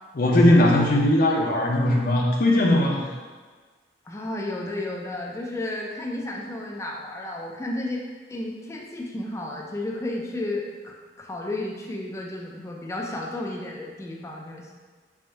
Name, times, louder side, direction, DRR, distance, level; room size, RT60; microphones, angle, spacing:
voice 1, 0.1-3.1, left 1 dB, 55° left, -1 dB, 0.7 m, -19 dB
voice 2, 4.1-8.0 8.3-14.7, left 1 dB, 15° left, -2 dB, 0.3 m, -32 dB
3.4 x 2.5 x 4.4 m, 1.4 s
head